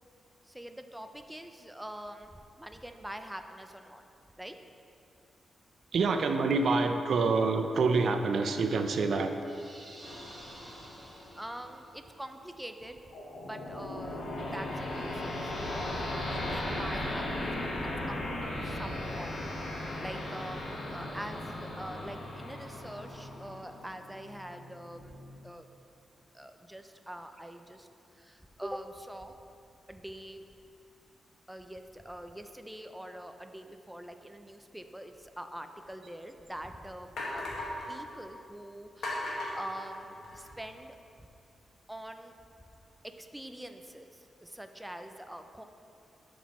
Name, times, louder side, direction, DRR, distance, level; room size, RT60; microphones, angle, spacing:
voice 1, 0.4-4.0 4.4-4.6 11.3-13.0 13.4-17.7 18.1-25.2 25.4-25.7 26.3-29.3 29.9-30.4 31.5-41.0 41.9-42.3 43.0-45.6, right 1 dB, 5° right, 6 dB, 0.4 m, -44 dB
voice 2, 5.9-9.3 18.9-19.0, right 4 dB, 65° right, 6 dB, 0.5 m, -27 dB
sound 1, 9.4-12.0, right 1 dB, 25° right, 1.8 m, -51 dB
sound 2, 10.0-12.0 13.1-25.4, left 1 dB, 60° left, 1.3 m, -37 dB
sound 3, 35.8-35.9 36.5-36.6 37.2-37.9 39.0-40.5, left 1 dB, 80° left, 1.6 m, -36 dB
11.5 x 6.2 x 3.0 m, 2.6 s
wide cardioid pair, 125°, 0 cm